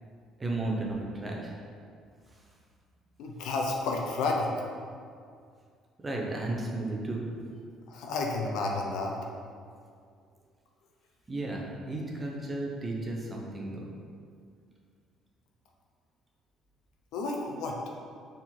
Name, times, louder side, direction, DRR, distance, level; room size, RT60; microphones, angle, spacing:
voice 1, 0.4-1.5 6.0-7.3 11.3-13.8, right 2 dB, 15° right, -1 dB, 0.8 m, -34 dB
voice 2, 3.2-4.5 7.9-9.2 17.1-17.8, left 3 dB, 70° left, 0 dB, 0.8 m, -31 dB
6.4 x 3.9 x 4.5 m, 2.2 s
cardioid pair, 160°, 0 cm